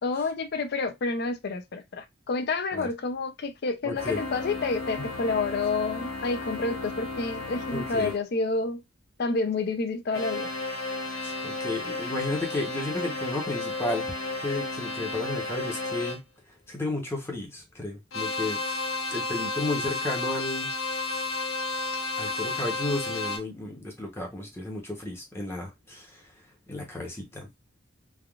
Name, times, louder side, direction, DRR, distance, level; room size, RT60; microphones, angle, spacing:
voice 1, 0.0-8.8 9.2-10.5, left 3 dB, 50° left, 0.4 m, -29 dB
voice 2, 3.8-4.2 5.0-5.1 7.7-8.1 11.1-14.1 14.4-16.2 16.7-18.6 19.1-20.7 22.2-26.2 26.7-27.5, left 2 dB, 10° left, 0.8 m, -33 dB
sound 1, 3.9-8.2 10.1-16.2 18.1-23.4, left 3 dB, 80° left, 1.1 m, -33 dB
3.4 x 2.3 x 2.3 m
head